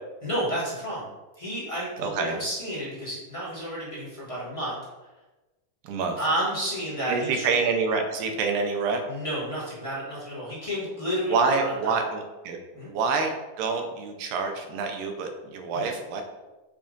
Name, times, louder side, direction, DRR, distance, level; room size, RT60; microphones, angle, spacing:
voice 1, 0.2-1.1 1.3-4.8 6.2-7.5 9.1-12.0 12.7-12.9 15.7-15.9, equal, 20° left, -7 dB, 0.8 m, -31 dB
voice 2, 2.0-2.4 5.8-6.2 7.1-9.0 11.3-12.6 12.9-13.3 13.6-16.2, right 4 dB, 90° right, 4 dB, 2.4 m, -27 dB
7.2 x 2.5 x 5.3 m, 1.1 s
omnidirectional pair, 3.8 m